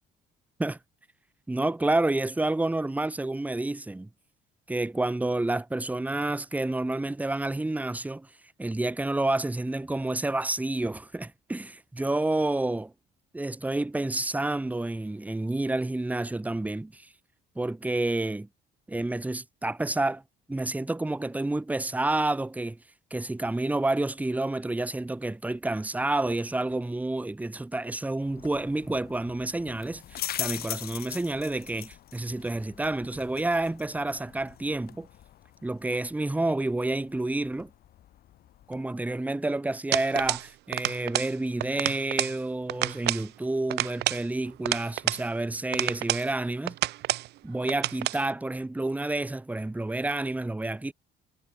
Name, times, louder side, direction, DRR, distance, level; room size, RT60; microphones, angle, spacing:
voice 1, 1.5-4.1 4.7-8.3 8.6-12.9 13.3-17.1 17.5-18.5 18.9-20.2 20.5-22.8 23.1-35.1 35.6-37.7 38.7-46.8 47.4-50.9, right 2 dB, 10° right, 1.6 m, -29 dB
sound 1, 28.2-38.8, left 12 dB, 65° left, 5.7 m, -42 dB
sound 2, 39.9-40.5 40.7-41.3 41.6-42.4 42.7-43.3 43.7-45.2 45.7-46.3 46.7-47.3 47.7-48.2, right 16 dB, 80° right, 2.4 m, -29 dB
cardioid pair, 110°, 17 cm